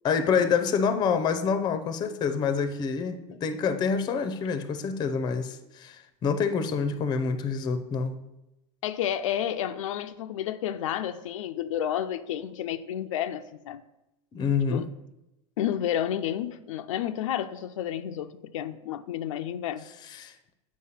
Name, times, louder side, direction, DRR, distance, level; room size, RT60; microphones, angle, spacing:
voice 1, 0.0-8.1 14.3-14.8 20.1-20.3, left 6 dB, 25° left, 0.6 m, -27 dB
voice 2, 8.8-13.8 14.7-14.9 15.6-19.9, left 10 dB, 85° left, 0.5 m, -31 dB
8.5 x 4.6 x 5.7 m
supercardioid pair, 140°, 16 cm